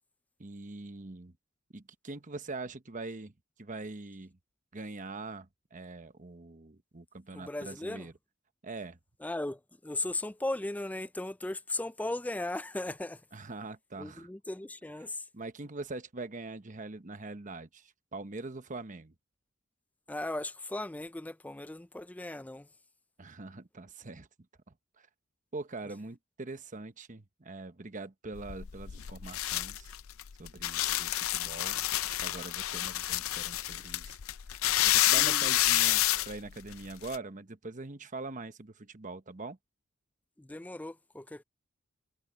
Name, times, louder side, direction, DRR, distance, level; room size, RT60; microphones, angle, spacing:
voice 1, 0.4-1.3 1.7-3.3 3.6-4.4 4.7-8.1 8.6-9.0 13.3-14.3 15.3-19.1 23.2-24.3 25.0-25.1 25.5-29.9 30.4-34.2 34.8-39.6, right 3 dB, 40° right, 1.1 m, -43 dB
voice 2, 7.3-8.1 9.2-13.2 14.0-15.3 20.1-22.7 35.2-35.5 40.4-41.4, left 2 dB, 5° left, 0.4 m, -37 dB
sound 1, 28.3-37.2, left 15 dB, 85° left, 0.5 m, -29 dB
head